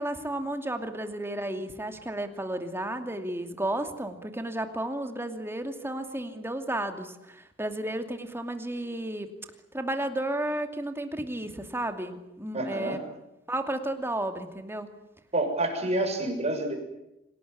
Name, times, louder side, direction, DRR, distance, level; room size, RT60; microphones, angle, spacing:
voice 1, 0.0-9.3 9.7-13.0 13.5-14.9, right 1 dB, 10° right, 7 dB, 2.6 m, -33 dB
voice 2, 12.5-13.0 15.3-16.8, right 1 dB, 35° right, 3 dB, 6.7 m, -28 dB
27.0 x 18.5 x 9.8 m, 0.89 s
head